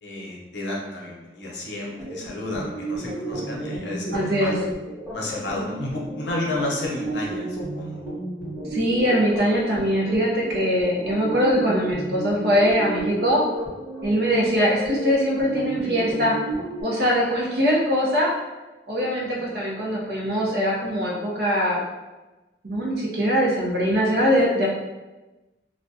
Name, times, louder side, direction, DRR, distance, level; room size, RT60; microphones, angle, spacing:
voice 1, 0.0-4.5 5.1-8.0 19.4-19.5, left 1 dB, 75° left, -3 dB, 0.7 m, -31 dB
sound 1, 1.9-16.8, right 1 dB, ahead, 1.2 m, -33 dB
voice 2, 4.1-4.5 8.7-13.4 14.0-16.4 16.8-18.3 18.9-21.8 22.6-24.7, equal, 60° right, -4 dB, 0.6 m, -22 dB
2.3 x 2.1 x 2.6 m, 1.1 s
head